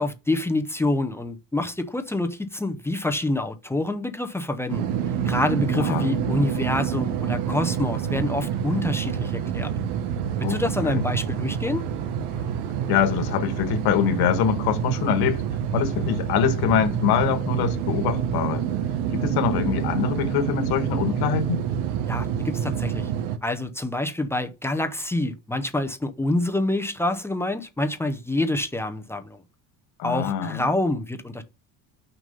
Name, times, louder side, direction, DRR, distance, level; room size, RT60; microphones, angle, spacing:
voice 1, 0.0-4.9 5.2-9.7 10.5-11.9 22.1-23.1 23.4-29.4 30.0-31.4, left 2 dB, 5° left, 0.6 m, -27 dB
sound 1, 4.7-23.4, right 8 dB, 85° right, 1.2 m, -27 dB
voice 2, 5.7-6.1 10.4-11.0 12.9-15.4 15.7-18.6 19.1-21.6 30.0-30.7, left 7 dB, 70° left, 1.6 m, -24 dB
6.3 x 5.3 x 5.4 m
cardioid pair, 160°, 39 cm